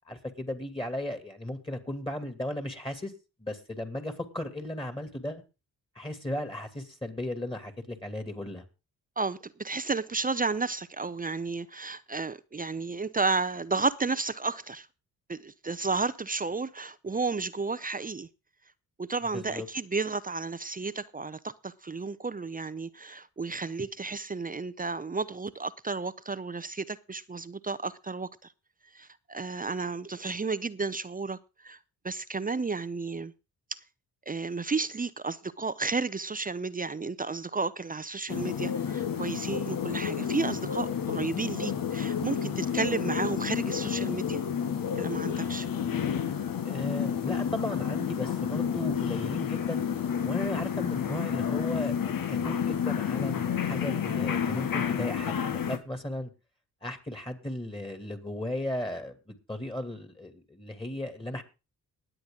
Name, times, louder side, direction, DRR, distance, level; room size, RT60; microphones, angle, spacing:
voice 1, 0.1-3.1 3.4-5.4 6.0-8.6 19.3-19.7 46.6-49.8 50.2-56.3 56.8-61.4, left 1 dB, 15° left, 2.5 m, -36 dB
voice 2, 9.2-14.9 15.3-18.3 19.0-28.3 28.9-31.8 32.0-33.3 33.7-33.8 34.3-44.4 44.9-45.7, right 4 dB, 25° right, 0.7 m, -32 dB
sound 1, 38.3-55.8, left 8 dB, 60° left, 1.4 m, -30 dB
20.0 x 8.0 x 3.8 m
cardioid pair, 60°, 38 cm